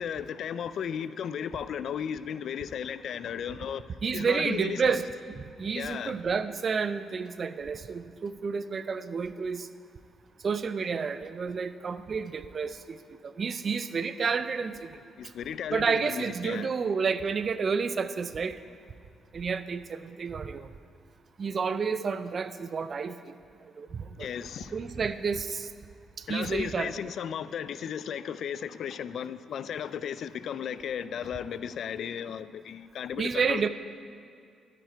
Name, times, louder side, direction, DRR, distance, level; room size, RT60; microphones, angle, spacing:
voice 1, 0.0-5.0 5.7-6.2 15.2-16.7 24.2-24.8 26.3-33.7, left 8 dB, 65° left, 0.4 m, -35 dB
voice 2, 4.0-9.7 10.4-14.9 15.7-18.6 19.3-20.7 21.4-23.4 23.8-24.3 24.7-25.7 26.3-26.9 33.2-33.7, right 5 dB, 45° right, 0.5 m, -30 dB
12.0 x 9.1 x 4.5 m
cardioid pair, 90°, 0 cm